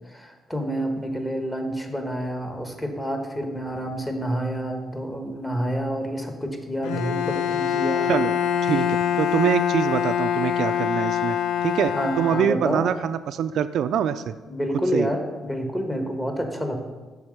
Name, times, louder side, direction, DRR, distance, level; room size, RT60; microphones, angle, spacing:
voice 1, 0.1-8.1 11.9-12.8 14.5-16.9, equal, 10° left, 4 dB, 1.2 m, -28 dB
Bowed string instrument, 6.8-13.0, left 9 dB, 85° left, 0.5 m, -25 dB
voice 2, 9.2-11.4 11.6-14.3 14.9-15.1, right 9 dB, 75° right, 11 dB, 0.3 m, -24 dB
7.3 x 4.1 x 6.5 m, 1.3 s
cardioid pair, 90°, 0 cm